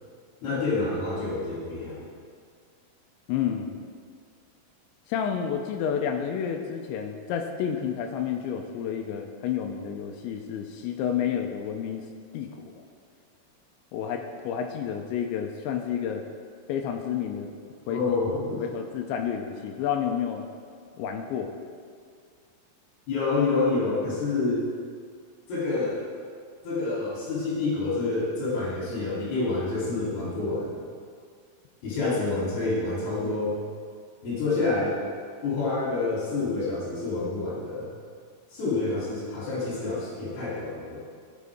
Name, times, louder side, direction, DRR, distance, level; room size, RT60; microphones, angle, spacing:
voice 1, 0.4-2.0 17.9-18.6 23.1-24.6 25.5-26.0 26.6-30.8 31.8-33.5 34.2-35.0 35.4-37.9 38.5-41.0, left 3 dB, 55° left, -8 dB, 4.9 m, -28 dB
voice 2, 3.3-3.8 5.1-12.0 12.3-12.8 13.9-16.2 16.7-17.5 17.9-18.0 18.6-20.4 21.0-21.5, left 8 dB, 85° left, 3 dB, 2.6 m, -30 dB
16.0 x 8.6 x 3.6 m, 2.1 s
omnidirectional pair, 6.0 m